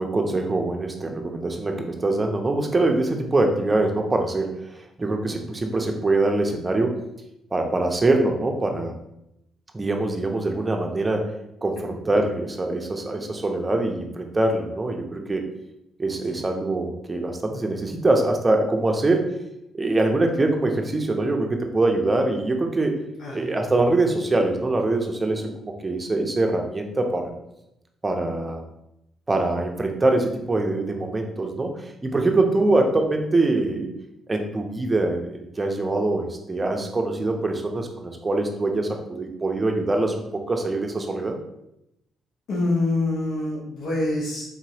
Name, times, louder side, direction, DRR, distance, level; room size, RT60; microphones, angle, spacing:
voice 1, 0.0-6.9 7.5-8.9 9.7-11.3 11.6-15.4 16.0-19.3 19.7-23.0 23.3-27.3 28.0-28.6 29.3-33.9 34.3-41.3, right 2 dB, 25° right, 3 dB, 0.6 m, -23 dB
voice 2, 23.2-23.5 42.5-44.4, left 2 dB, 75° left, -4 dB, 0.9 m, -25 dB
4.1 x 2.9 x 2.8 m, 0.83 s
cardioid pair, 90°, 0 cm